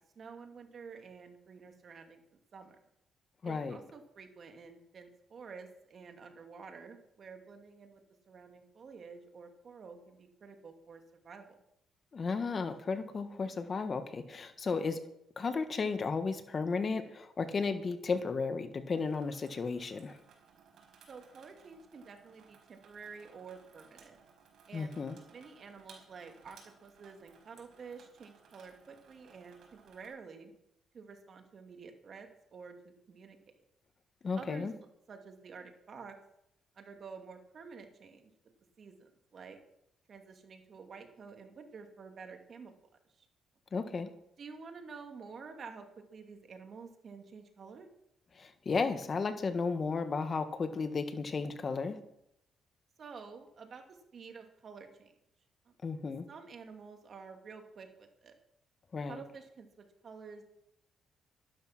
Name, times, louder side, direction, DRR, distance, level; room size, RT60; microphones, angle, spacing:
voice 1, 0.1-2.8 3.4-8.0 8.3-11.5 21.1-24.2 24.7-25.0 25.3-30.5 30.9-32.7 33.1-33.4 34.3-34.7 35.1-36.2 36.8-38.3 38.8-39.6 40.1-42.7 43.2-43.3 44.4-47.9 53.0-55.1 55.7-55.8 56.3-58.3 59.1-59.7 60.0-60.4, right 5 dB, 50° right, 5 dB, 2.6 m, -50 dB
voice 2, 3.4-3.8 12.1-15.0 15.4-20.2 24.7-25.2 34.2-34.7 43.7-44.1 48.3-52.0 55.8-56.3 58.9-59.2, left 4 dB, 40° left, 9 dB, 1.5 m, -34 dB
Water tap faucet / Sink (filling or washing), 18.9-30.1, right 5 dB, 70° right, 5.1 m, -61 dB
13.0 x 12.0 x 6.1 m, 0.78 s
cardioid pair, 90°, 0 cm